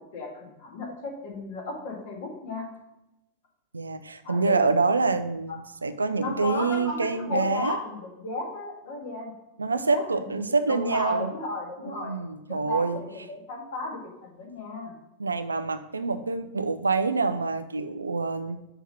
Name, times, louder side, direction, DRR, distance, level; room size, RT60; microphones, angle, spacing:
voice 1, 0.1-2.7 4.2-4.8 5.5-5.6 6.2-9.3 9.7-12.2 12.6-15.0, left 2 dB, 55° left, -2 dB, 1.9 m, -35 dB
voice 2, 3.7-7.8 9.6-11.3 11.9-13.0 15.2-18.6, right 4 dB, 75° right, 10 dB, 0.4 m, -26 dB
5.8 x 3.4 x 5.5 m, 0.90 s
figure-of-eight pair, 90°, 0 cm